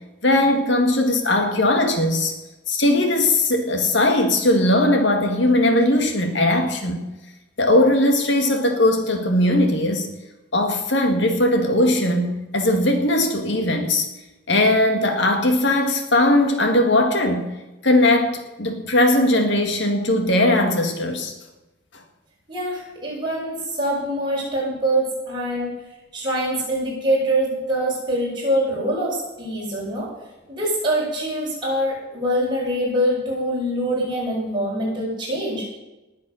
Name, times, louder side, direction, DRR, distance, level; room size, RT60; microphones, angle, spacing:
voice 1, 0.2-2.3 2.7-7.0 7.6-10.1 10.5-14.1 14.5-17.5 17.8-21.3, left 1 dB, 60° left, 5 dB, 2.0 m, -19 dB
voice 2, 22.5-25.7 26.1-30.1 30.5-35.7, right 1 dB, 25° right, -4 dB, 6.2 m, -24 dB
19.5 x 8.1 x 6.4 m, 1.0 s
head